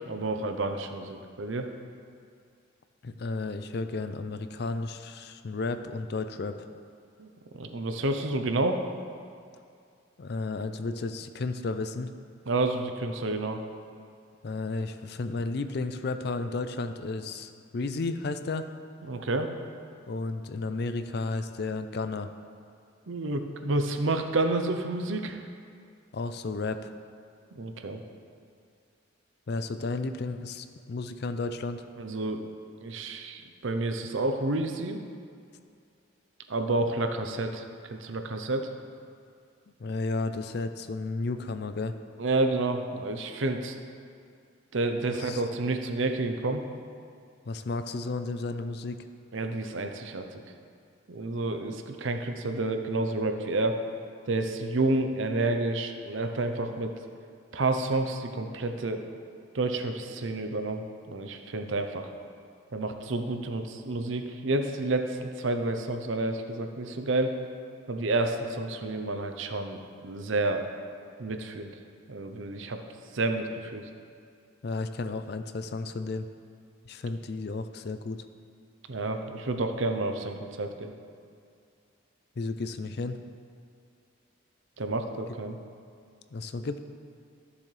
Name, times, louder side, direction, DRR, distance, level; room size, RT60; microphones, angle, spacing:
voice 1, 0.0-1.7 7.2-7.3 7.5-8.8 12.5-13.6 19.1-19.5 23.1-25.4 27.5-28.0 32.0-32.4 32.8-35.0 36.5-37.6 37.9-38.7 42.2-43.8 44.7-46.6 49.3-50.4 51.1-53.8 54.3-56.9 57.5-59.0 59.5-60.8 61.1-62.1 62.7-67.4 67.9-70.6 71.2-71.7 72.1-72.8 73.1-73.9 78.9-80.9 84.8-85.6, right 2 dB, 70° right, 6 dB, 0.7 m, -29 dB
voice 2, 3.0-6.7 10.2-12.1 14.4-18.7 20.1-22.3 26.1-26.9 29.5-31.8 39.8-41.9 45.2-45.4 47.4-49.0 74.6-76.3 76.9-78.2 82.4-83.2 86.3-86.8, left 3 dB, 50° left, 10 dB, 0.4 m, -33 dB
13.5 x 7.1 x 3.3 m, 2.4 s
head